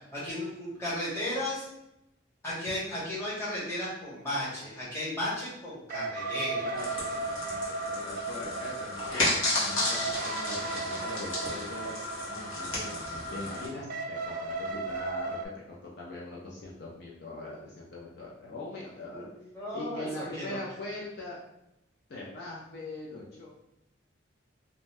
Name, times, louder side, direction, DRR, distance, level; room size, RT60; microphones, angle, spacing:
voice 1, 0.1-1.7 2.4-6.6 9.2-9.3 19.1-20.6, left 1 dB, 15° left, -8 dB, 1.0 m, -35 dB
sound 1, 5.9-15.5, right 3 dB, 45° right, 0.3 m, -36 dB
voice 2, 6.6-12.9 13.3-19.3 19.7-21.4 22.1-23.5, left 2 dB, 55° left, -4 dB, 0.5 m, -41 dB
sound 2, 6.7-13.7, left 2 dB, 90° left, 1.1 m, -33 dB
2.6 x 2.2 x 3.2 m, 0.86 s
head